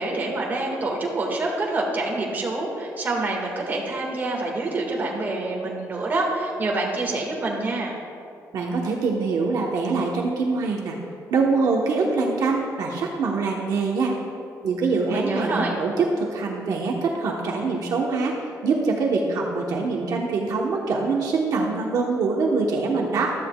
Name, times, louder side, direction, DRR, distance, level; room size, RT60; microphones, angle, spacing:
voice 1, 0.0-8.0 15.1-15.7, right 2 dB, 30° right, -1 dB, 1.8 m, -26 dB
voice 2, 8.5-10.9 11.3-14.1 14.6-18.3 18.6-23.3, right 4 dB, 70° right, -1 dB, 1.1 m, -24 dB
15.0 x 12.5 x 2.3 m, 2.5 s
wide cardioid pair, 175°, 7 cm